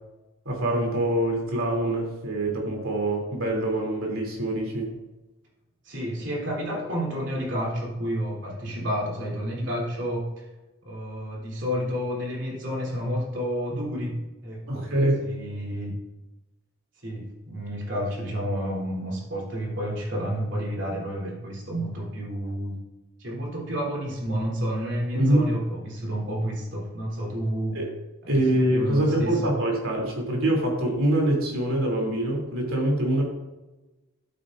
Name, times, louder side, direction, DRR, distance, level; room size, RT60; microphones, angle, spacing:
voice 1, 0.4-4.9 14.7-15.2 25.1-25.5 27.7-27.8 28.3-33.2, right 1 dB, 85° right, -1 dB, 3.1 m, -24 dB
voice 2, 5.8-10.4 10.8-14.9 15.2-16.0 17.0-22.7 23.2-27.8 28.2-29.5, equal, 60° right, -3 dB, 3.4 m, -30 dB
11.5 x 9.0 x 2.6 m, 1.1 s
head